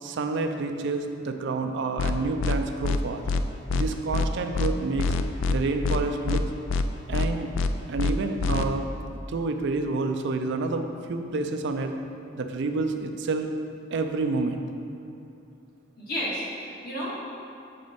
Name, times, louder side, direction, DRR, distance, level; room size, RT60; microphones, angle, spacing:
voice 1, 0.0-3.2 3.7-5.2 5.5-6.4 7.1-7.5 7.9-8.9 9.3-11.9 12.3-13.5 13.9-14.6, right 3 dB, 60° right, 6 dB, 0.4 m, -28 dB
sound 1, 2.0-2.1 2.4-2.6 2.8-3.0 3.3-3.4 3.7-3.8 4.1-4.3 4.5-4.7 5.0-5.6 5.8-6.0 6.3-6.4 6.7-6.8 7.1-7.3 7.5-7.7 8.0-8.1 8.4-8.6, left 4 dB, 70° left, 0.3 m, -25 dB
voice 2, 16.0-17.2, equal, 50° left, -5 dB, 1.5 m, -32 dB
6.8 x 5.0 x 4.1 m, 2.7 s
head